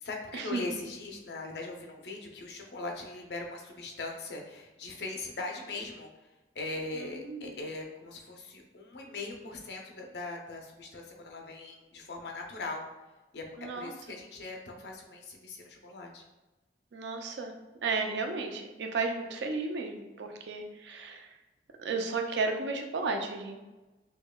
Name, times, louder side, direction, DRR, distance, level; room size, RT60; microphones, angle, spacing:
voice 1, 0.0-6.1 6.5-12.8 13.3-13.4 13.7-16.2, left 2 dB, 65° left, 1 dB, 0.6 m, -40 dB
voice 2, 7.0-7.5 13.6-13.9 16.9-17.5 17.8-21.3 21.8-23.6, right 3 dB, 75° right, 5 dB, 0.4 m, -33 dB
5.2 x 2.2 x 2.2 m, 1.1 s
head